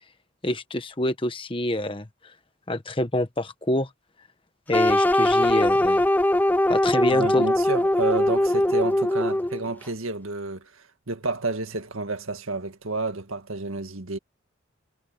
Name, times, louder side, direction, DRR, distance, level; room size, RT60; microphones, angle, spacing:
voice 1, 0.4-2.1 2.7-3.9 4.7-6.0 6.7-7.4, left 1 dB, 25° left, 1.2 m, -26 dB
sound 1, 4.7-9.7, left 1 dB, 10° left, 0.4 m, -21 dB
voice 2, 7.1-14.2, right 3 dB, 80° right, 1.9 m, -30 dB
head